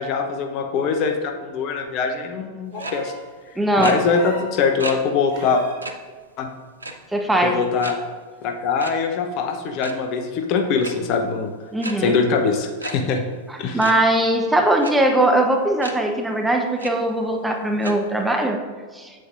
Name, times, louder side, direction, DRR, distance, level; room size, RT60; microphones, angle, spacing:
voice 1, 0.0-3.1 3.8-5.6 6.4-6.5 7.4-8.0 8.4-11.5 12.0-13.2 13.6-13.8, left 5 dB, 40° left, 5 dB, 0.7 m, -22 dB
sound 1, 2.7-3.3 4.1-4.6 5.3-5.8 7.3-7.4, right 2 dB, 55° right, 1.3 m, -37 dB
sound 2, 2.8-2.9 3.8-3.9 4.8-4.9 5.3-5.4 5.8-5.9 6.8-7.1 7.8-7.9 8.8-8.9 9.7-9.9 10.8-10.9 11.8-11.9 12.8-12.9 13.8-13.9 14.8-14.9 15.8-15.9 16.4-16.5 16.8-16.9 17.8-17.9, right 2 dB, 80° right, 0.5 m, -31 dB
voice 2, 3.6-4.0 7.1-7.6 11.7-12.2 13.5-18.6 18.9-19.1, right 1 dB, 5° right, 3 dB, 0.7 m, -20 dB
8.0 x 7.6 x 2.5 m, 1.5 s
figure-of-eight pair, 90°, 0 cm